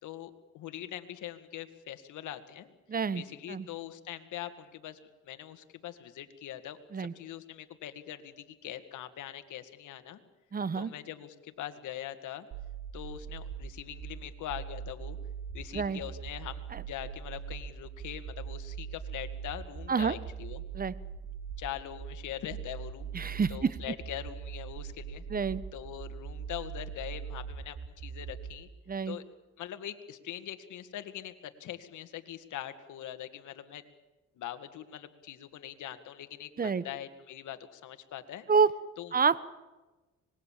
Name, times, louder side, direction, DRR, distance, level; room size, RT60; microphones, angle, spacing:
voice 1, 0.0-2.7 3.1-5.0 5.2-10.2 10.8-12.5 12.9-15.2 15.5-20.6 21.6-25.2 25.7-28.7 29.1-29.2 29.6-33.8 34.4-38.5 39.0-39.1, left 11 dB, 80° left, 9 dB, 2.0 m, -42 dB
voice 2, 2.9-3.2 3.5-3.7 6.9-7.1 10.5-10.9 15.7-16.0 16.7-16.8 19.9-20.2 20.7-20.9 23.1-23.8 25.3-25.6 28.9-29.2 36.6-36.8 38.5-38.7 39.1-39.5, right 5 dB, 30° right, 18 dB, 1.1 m, -28 dB
sound 1, 12.5-28.5, right 7 dB, 80° right, 5.5 m, -41 dB
25.5 x 21.0 x 7.5 m, 1.2 s
cardioid pair, 90°, 30 cm